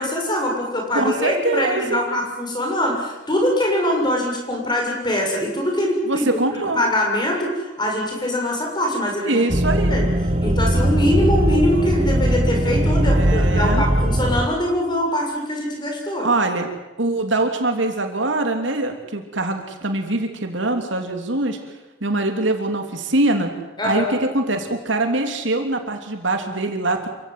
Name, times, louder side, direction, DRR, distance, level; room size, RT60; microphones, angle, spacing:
voice 1, 0.0-6.3 6.8-9.4 9.9-10.1 10.4-16.3 23.8-24.2, left 1 dB, 20° left, 1 dB, 7.1 m, -23 dB
voice 2, 0.9-2.0 6.1-6.8 9.2-9.9 13.0-13.8 16.2-16.7 17.0-21.6 22.0-23.5 23.8-27.1, right 2 dB, 65° right, 5 dB, 3.1 m, -23 dB
sound 1, 9.5-14.5, right 1 dB, 30° right, 1.5 m, -19 dB
28.0 x 16.5 x 9.4 m, 1.1 s
head